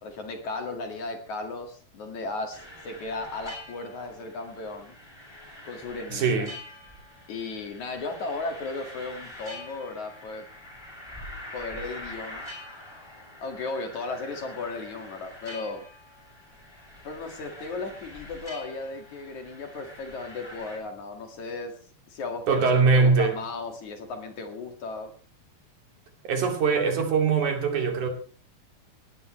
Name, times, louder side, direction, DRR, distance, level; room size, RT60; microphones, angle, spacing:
voice 1, 0.0-5.0 5.6-6.5 7.3-10.5 11.5-12.5 13.4-15.8 17.0-21.7 22.1-25.1, left 3 dB, 55° left, 3.2 m, -35 dB
sound 1, 2.5-20.8, left 1 dB, 5° left, 6.7 m, -45 dB
voice 2, 6.1-6.6 22.5-23.3 26.3-28.1, right 5 dB, 55° right, 3.8 m, -22 dB
19.0 x 18.5 x 3.2 m
omnidirectional pair, 4.3 m